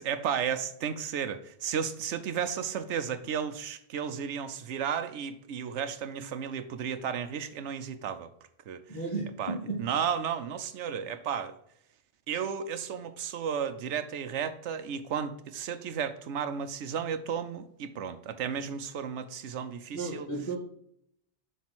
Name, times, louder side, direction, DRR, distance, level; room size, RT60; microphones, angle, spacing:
voice 1, 0.0-8.3 8.7-8.8 9.4-11.5 12.3-20.3, right 7 dB, 80° right, 1.0 m, -33 dB
voice 2, 8.9-9.8 19.9-20.6, right 3 dB, 20° left, 1.3 m, -34 dB
7.4 x 3.4 x 6.0 m
omnidirectional pair, 1.2 m